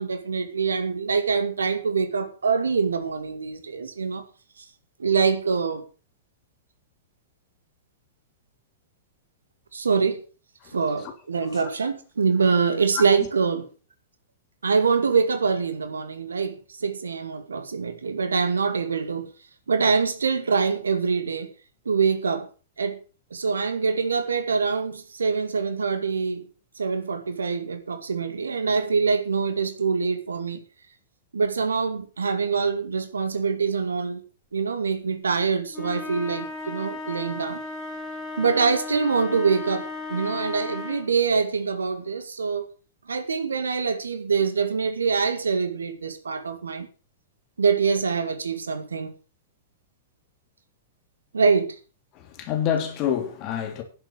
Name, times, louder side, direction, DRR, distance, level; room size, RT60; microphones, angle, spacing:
voice 1, 0.0-4.2 4.6-4.7 5.0-5.8 9.7-10.2 10.7-13.7 14.6-19.3 19.7-21.5 21.9-22.5 22.8-23.0 23.3-26.4 26.8-30.6 31.3-34.2 34.5-37.6 38.4-42.7 43.1-46.9 47.6-49.1 51.3-51.8, right 5 dB, 70° right, 2.1 m, -24 dB
voice 2, 10.6-11.1 11.4-11.6 12.9-13.3 52.1-53.8, left 9 dB, 35° left, 3.2 m, -28 dB
sound 1, 35.7-41.2, left 3 dB, 20° left, 4.0 m, -35 dB
10.5 x 7.9 x 6.8 m
figure-of-eight pair, 100°, 0 cm